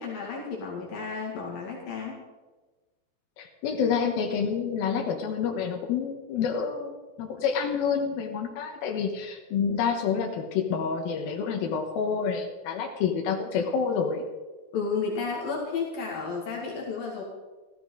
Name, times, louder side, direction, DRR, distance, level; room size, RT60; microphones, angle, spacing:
voice 1, 0.0-2.2 14.7-17.2, left 5 dB, 70° left, -3 dB, 3.8 m, -32 dB
voice 2, 3.4-14.2, left 6 dB, 85° left, 2 dB, 3.0 m, -28 dB
15.5 x 14.5 x 3.9 m, 1.3 s
omnidirectional pair, 4.2 m